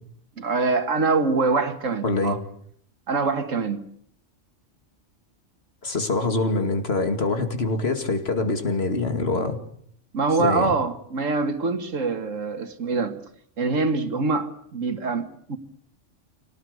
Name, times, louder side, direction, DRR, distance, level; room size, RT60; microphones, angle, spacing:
voice 1, 0.4-2.4 3.1-3.8 10.1-13.2 13.6-15.6, right 3 dB, 85° right, 2.1 m, -24 dB
voice 2, 2.0-2.4 5.8-9.6 10.4-10.7, left 3 dB, 55° left, 2.6 m, -24 dB
25.5 x 18.5 x 8.3 m
omnidirectional pair, 1.3 m